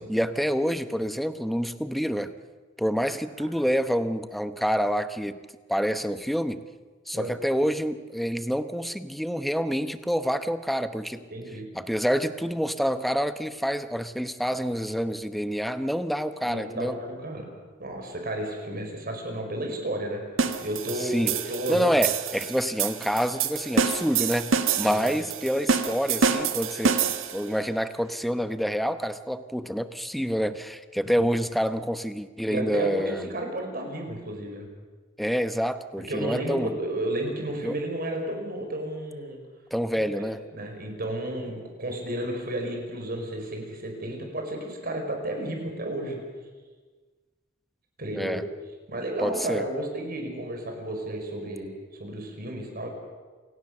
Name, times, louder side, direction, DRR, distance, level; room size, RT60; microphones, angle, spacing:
voice 1, 0.0-2.3 2.8-5.4 5.7-6.6 7.1-11.2 11.7-17.0 21.0-21.3 21.7-33.2 35.2-36.7 37.6-37.7 39.7-40.4 48.1-48.4 49.2-49.6, equal, ahead, 10 dB, 1.0 m, -27 dB
voice 2, 11.3-11.7 16.4-17.5 17.8-20.2 20.6-21.9 24.8-25.3 31.1-31.3 32.5-34.7 36.1-39.4 39.9-46.2 48.0-48.4 48.9-52.9, right 1 dB, 50° right, 3 dB, 5.3 m, -32 dB
sound 1, 20.4-27.5, right 5 dB, 90° right, 1.6 m, -27 dB
28.0 x 18.0 x 6.7 m, 1.4 s
head